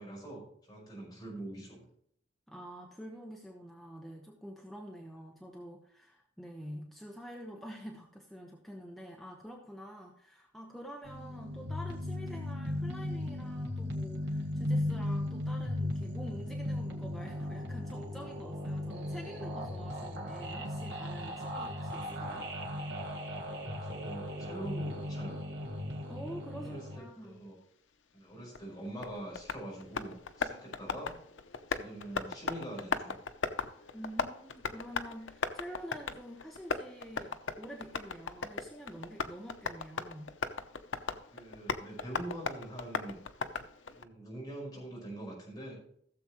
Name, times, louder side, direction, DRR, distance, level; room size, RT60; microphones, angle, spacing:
voice 1, 0.0-1.8 23.7-25.4 26.6-26.8 27.2-27.5 28.1-31.1 31.7-33.2 41.3-43.2 43.9-45.8, right 1 dB, 20° left, -4 dB, 5.3 m, -44 dB
voice 2, 2.5-22.5 26.0-27.4 33.9-40.3, equal, ahead, -1 dB, 1.1 m, -47 dB
sound 1, 11.1-27.0, left 1 dB, 65° right, 1.8 m, -37 dB
Tap, 28.5-44.0, left 4 dB, 90° left, 0.8 m, -38 dB
16.5 x 7.2 x 3.1 m, 0.66 s
head